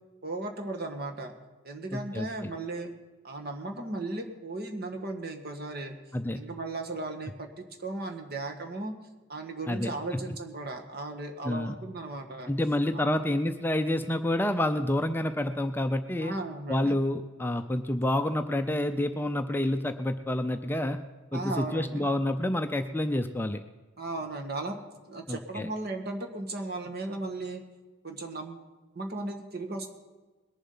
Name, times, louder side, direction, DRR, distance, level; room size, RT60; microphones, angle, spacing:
voice 1, 0.2-1.3 1.6-2.9 3.2-6.0 6.3-8.9 9.3-12.5 12.9-13.2 16.2-17.0 21.3-22.1 24.0-27.6 28.0-28.7 28.9-29.9, right 2 dB, 50° right, 4 dB, 1.6 m, -36 dB
voice 2, 1.9-2.5 6.1-6.4 9.7-10.2 11.4-11.8 12.5-16.3 16.7-21.0 21.3-23.6 25.3-25.7, left 1 dB, 10° left, 7 dB, 0.5 m, -28 dB
21.0 x 7.3 x 5.6 m, 1.3 s
head